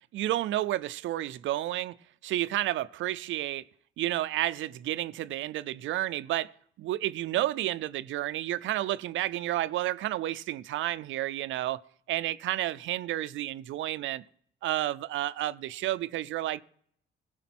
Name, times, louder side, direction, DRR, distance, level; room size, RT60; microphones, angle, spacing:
voice 1, 0.1-1.9 2.2-3.6 4.0-6.5 6.8-11.8 12.1-14.2 14.6-16.6, right 14 dB, 80° right, 0.5 m, -31 dB
16.0 x 6.3 x 6.0 m
cardioid pair, 90°, 20 cm